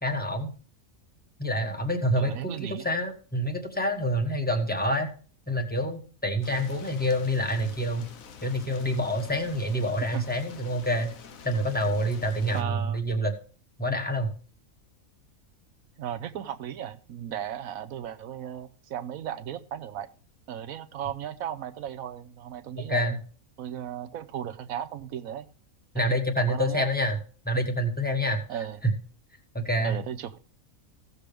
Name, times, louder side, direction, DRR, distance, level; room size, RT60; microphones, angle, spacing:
voice 1, 0.0-0.5 1.4-5.1 5.5-8.0 8.4-11.1 11.4-13.3 13.8-14.3 22.8-23.2 25.9-27.2 27.4-28.4 28.8-28.9 29.5-30.0, equal, 5° left, 4 dB, 1.4 m, -27 dB
voice 2, 2.2-2.9 10.1-10.3 12.5-13.0 16.0-20.1 20.5-23.2 23.6-25.5 25.9-26.9 28.5-28.8 29.8-30.4, right 10 dB, 85° right, 8 dB, 1.1 m, -36 dB
sound 1, 6.4-12.6, left 6 dB, 75° left, 1.3 m, -47 dB
16.0 x 6.8 x 3.4 m, 0.38 s
omnidirectional pair, 1.5 m